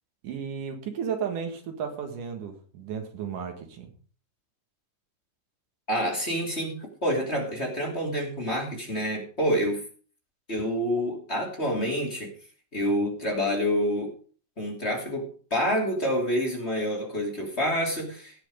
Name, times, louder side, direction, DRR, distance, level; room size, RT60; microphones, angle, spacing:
voice 1, 0.2-3.9, right 7 dB, 85° right, 5 dB, 3.4 m, -34 dB
voice 2, 5.9-9.8 10.5-12.3 12.7-14.1 14.6-18.5, equal, 20° left, -1 dB, 2.9 m, -28 dB
17.0 x 6.3 x 5.1 m, 0.41 s
omnidirectional pair, 3.6 m